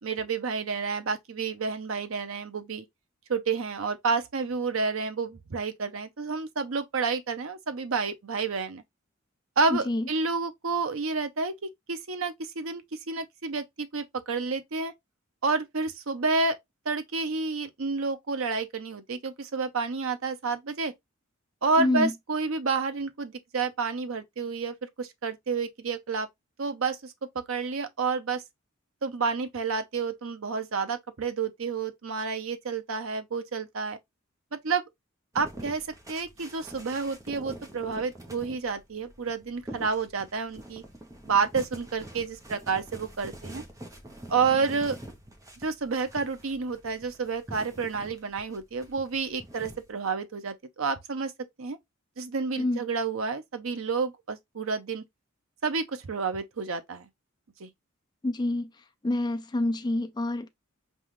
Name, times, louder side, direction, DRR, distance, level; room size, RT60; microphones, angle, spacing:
voice 1, 0.0-2.9 3.3-8.8 9.6-14.9 15.4-16.6 16.9-20.9 21.6-26.3 26.6-28.4 29.0-34.0 34.6-34.9 35.3-40.8 41.2-43.6 44.3-45.0 45.6-51.3 51.6-51.8 52.2-55.0 55.6-57.1 57.6-57.7, right 4 dB, 70° right, 0.7 m, -30 dB
voice 2, 9.7-10.1 21.8-22.1 52.6-52.8 58.2-58.7 59.0-60.5, left 2 dB, 20° left, 0.4 m, -27 dB
sound 1, 35.3-49.9, right 1 dB, 15° right, 0.8 m, -45 dB
5.4 x 2.4 x 3.0 m
head